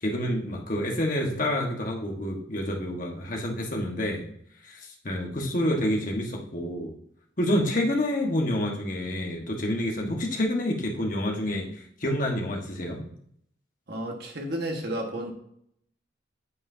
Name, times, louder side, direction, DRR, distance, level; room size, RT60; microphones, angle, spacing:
voice 1, 0.0-4.3 4.7-4.8 5.0-6.9 7.4-11.7 12.0-13.0, left 1 dB, 40° left, 0 dB, 1.3 m, -28 dB
voice 2, 13.9-15.3, right 1 dB, 55° right, 2 dB, 1.4 m, -32 dB
8.4 x 7.7 x 2.7 m, 0.70 s
head